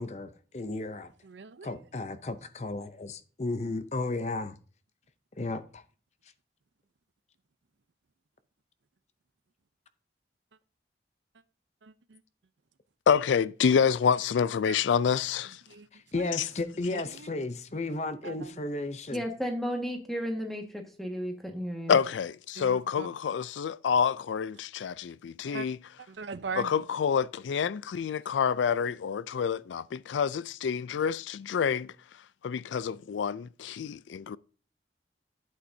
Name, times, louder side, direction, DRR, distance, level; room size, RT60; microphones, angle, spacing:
voice 1, 0.0-1.1 1.6-4.5 5.4-5.8 16.1-19.2, left 2 dB, 40° left, 0.6 m, -34 dB
voice 2, 1.2-1.7 11.8-12.2 14.6-14.8 15.7-15.9 16.2-16.3 16.9-17.3 18.2-18.6 22.6-23.1 25.5-25.7 26.1-26.7, right 5 dB, 80° right, 0.6 m, -40 dB
voice 3, 13.1-15.6 21.9-25.8 26.5-31.9 32.4-34.4, left 7 dB, 90° left, 0.4 m, -27 dB
voice 4, 19.1-22.0, equal, ahead, 1.6 m, -33 dB
11.5 x 8.6 x 2.7 m
head